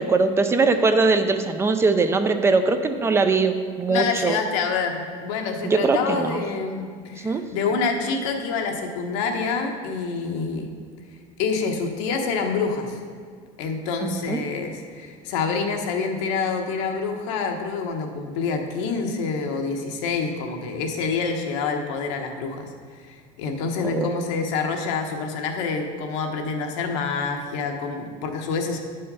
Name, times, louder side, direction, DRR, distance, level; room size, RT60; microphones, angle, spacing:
voice 1, 0.0-4.4 5.6-6.4 7.2-7.4 14.0-14.4 23.8-24.1, right 4 dB, 15° right, 8 dB, 0.4 m, -21 dB
voice 2, 3.9-10.7 11.4-13.0 13.6-22.7 23.1-28.8, left 5 dB, 85° left, 3 dB, 1.2 m, -27 dB
9.7 x 5.5 x 5.5 m, 2.1 s
cardioid pair, 145°, 15 cm